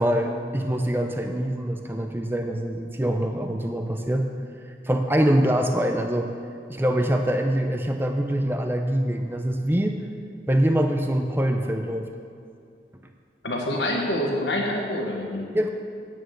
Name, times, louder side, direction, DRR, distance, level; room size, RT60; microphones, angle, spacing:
voice 1, 0.0-4.3 4.8-6.3 6.7-10.0 10.5-12.1 15.5-15.7, right 1 dB, 15° right, 4 dB, 0.5 m, -24 dB
voice 2, 13.4-15.4, left 1 dB, 80° left, 0 dB, 1.2 m, -26 dB
9.5 x 8.7 x 6.3 m, 2.3 s
head